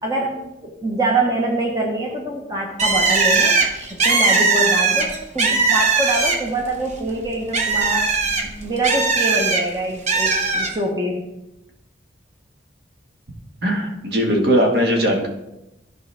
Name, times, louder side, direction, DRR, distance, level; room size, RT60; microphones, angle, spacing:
voice 1, 0.0-3.6 3.9-11.2, right 2 dB, 20° right, 0 dB, 1.0 m, -25 dB
Bird, 2.8-6.6 7.0-9.6 10.1-10.7, right 4 dB, 35° right, 1.2 m, -19 dB
voice 2, 13.6-15.3, equal, 55° right, 1 dB, 1.6 m, -19 dB
14.0 x 4.9 x 3.4 m, 0.93 s
head